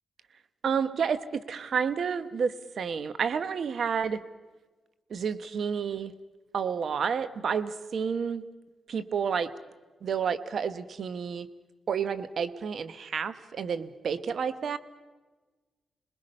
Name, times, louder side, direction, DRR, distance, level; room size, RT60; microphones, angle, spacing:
voice 1, 0.6-4.2 5.1-6.1 6.5-8.4 8.9-9.5 10.0-11.5 11.9-14.8, right 6 dB, 70° right, 13 dB, 1.0 m, -30 dB
27.0 x 20.5 x 5.4 m, 1.3 s
cardioid pair, 65°, 0 cm